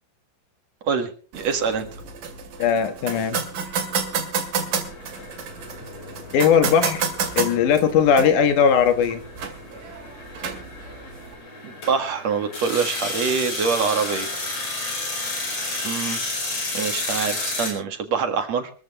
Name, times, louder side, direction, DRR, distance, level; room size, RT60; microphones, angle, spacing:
voice 1, 0.8-1.9 11.6-14.4 15.8-16.2 16.7-18.7, right 5 dB, 60° right, 6 dB, 2.8 m, -25 dB
sound 1, 1.3-11.3, right 6 dB, 90° right, 3.8 m, -31 dB
voice 2, 2.6-3.4 6.3-7.1 7.4-9.2, left 7 dB, 75° left, 8 dB, 3.0 m, -18 dB
sound 2, 4.9-17.7, left 2 dB, 55° left, 6.0 m, -32 dB
23.5 x 14.5 x 3.1 m, 0.38 s
omnidirectional pair, 3.6 m